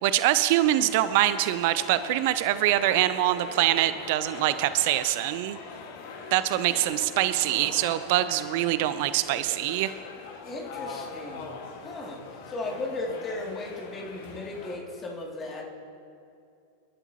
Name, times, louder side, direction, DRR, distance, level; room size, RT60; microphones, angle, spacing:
voice 1, 0.0-5.6 6.3-9.9, right 14 dB, 50° right, 13 dB, 0.5 m, -24 dB
sound 1, 0.6-14.8, left 4 dB, 50° left, 1.8 m, -42 dB
voice 2, 7.0-7.8 10.4-11.5 11.8-12.2 12.5-15.7, left 2 dB, 25° left, -1 dB, 2.6 m, -36 dB
28.5 x 11.5 x 3.0 m, 2.6 s
figure-of-eight pair, 90°, 0 cm